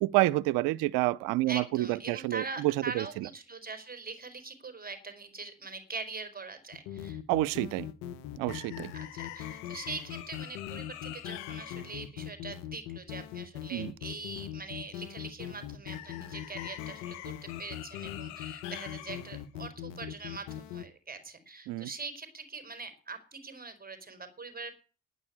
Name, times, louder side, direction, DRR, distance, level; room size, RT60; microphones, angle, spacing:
voice 1, 0.0-3.3 7.3-7.9 8.4-8.9 13.7-13.9 21.7-21.9, right 18 dB, 85° right, 0.7 m, -28 dB
voice 2, 1.5-7.2 8.9-24.7, right 4 dB, 30° right, 4.9 m, -43 dB
sound 1, 6.7-20.8, left 11 dB, 85° left, 1.0 m, -40 dB
10.0 x 9.5 x 8.9 m
hypercardioid pair, 55°, 31 cm